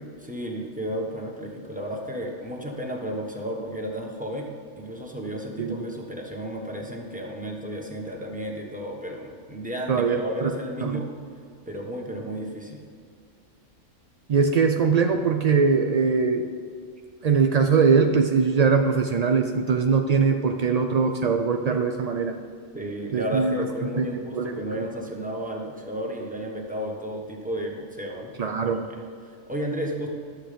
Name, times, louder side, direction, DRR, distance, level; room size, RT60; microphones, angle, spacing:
voice 1, 0.2-4.5 4.8-11.1 11.7-12.8 22.7-28.3 28.6-30.1, right 1 dB, 5° right, 0 dB, 1.1 m, -33 dB
voice 2, 9.9-10.5 10.8-11.0 14.3-16.5 17.2-22.3 23.1-23.7 24.0-24.8 28.4-28.9, right 5 dB, 70° right, 5 dB, 0.3 m, -22 dB
11.5 x 7.4 x 5.1 m, 2.2 s
omnidirectional pair, 1.3 m